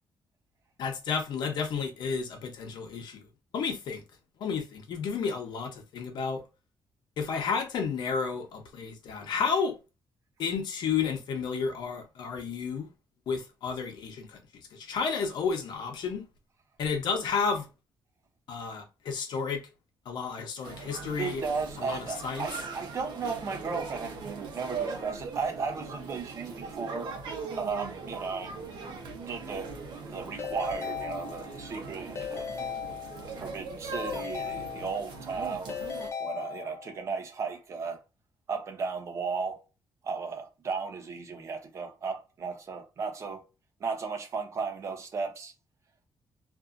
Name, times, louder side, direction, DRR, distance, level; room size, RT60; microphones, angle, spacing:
voice 1, 0.8-3.3 3.5-4.0 4.4-6.4 7.2-9.7 10.4-12.9 13.3-14.4 14.7-16.3 16.8-17.7 18.5-19.6 20.1-21.4 21.8-22.5, left 5 dB, 75° left, 0.8 m, -31 dB
sound 1, 20.6-36.1, right 4 dB, 80° right, 0.8 m, -40 dB
voice 2, 21.2-27.1 27.6-28.6 29.2-29.7 30.0-35.8 36.2-38.0 38.5-39.6 40.0-43.4 43.8-45.5, right 5 dB, 40° right, 0.6 m, -35 dB
Keyboard (musical) / Ringtone, 30.4-31.7 32.1-33.5 33.9-35.3 35.7-37.0, left 7 dB, 35° left, 0.4 m, -37 dB
2.6 x 2.5 x 2.4 m
wide cardioid pair, 180°, 8 cm